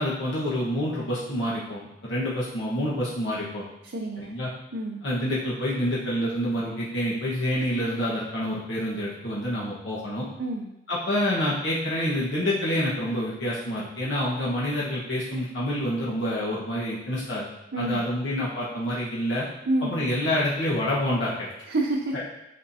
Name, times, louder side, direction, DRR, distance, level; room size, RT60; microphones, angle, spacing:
voice 1, 0.0-3.7 4.2-4.5 5.0-10.3 10.9-17.5 17.8-19.4 19.8-21.5, equal, 75° left, -7 dB, 1.4 m, -27 dB
voice 2, 3.8-4.3 4.7-5.0 10.4-10.7 17.7-18.0 19.6-19.9 21.7-22.3, right 2 dB, 75° right, 0 dB, 0.7 m, -28 dB
9.4 x 4.4 x 2.8 m, 0.90 s
head